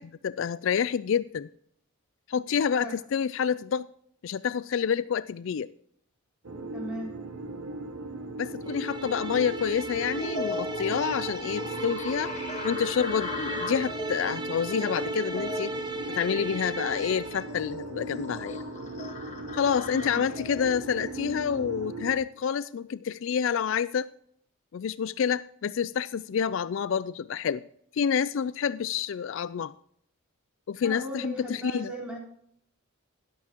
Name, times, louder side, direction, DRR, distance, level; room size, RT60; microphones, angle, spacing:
voice 1, 0.0-1.5 2.3-3.9 4.2-5.7 8.4-12.3 12.6-15.7 16.2-18.6 19.5-24.1 24.7-27.6 27.9-29.7 30.7-31.9, left 7 dB, 60° left, 0.3 m, -28 dB
sound 1, 6.4-22.2, right 2 dB, 85° right, 1.0 m, -38 dB
voice 2, 6.7-7.1 20.0-20.2 30.8-32.2, right 1 dB, 5° right, 3.7 m, -37 dB
sound 2, 8.6-17.5, right 2 dB, 20° right, 0.7 m, -36 dB
sound 3, 10.2-21.9, left 3 dB, 30° left, 1.3 m, -40 dB
13.0 x 11.0 x 2.9 m
head